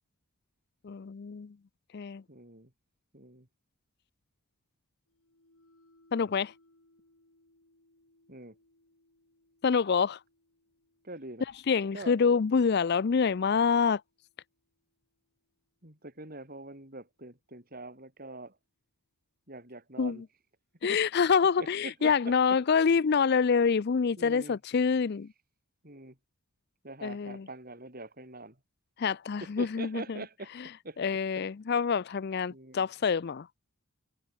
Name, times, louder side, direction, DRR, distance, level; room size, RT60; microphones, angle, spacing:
voice 1, 0.8-1.6 1.9-2.2 6.1-6.5 9.6-10.2 11.7-14.0 20.0-20.2 20.8-25.3 27.0-27.5 29.0-30.2 31.0-33.5, left 5 dB, 45° left, 0.4 m, -26 dB
voice 2, 2.3-2.7 3.1-3.5 8.3-8.6 11.0-11.5 11.9-12.1 15.8-18.6 19.5-20.2 20.8-21.0 21.6-22.3 24.2-24.6 25.8-26.2 26.8-28.6 29.4-30.5 30.8-31.0 32.5-32.9, right 2 dB, 40° right, 4.5 m, -44 dB
sound 1, 5.1-15.1, left 1 dB, 80° left, 6.7 m, -68 dB
head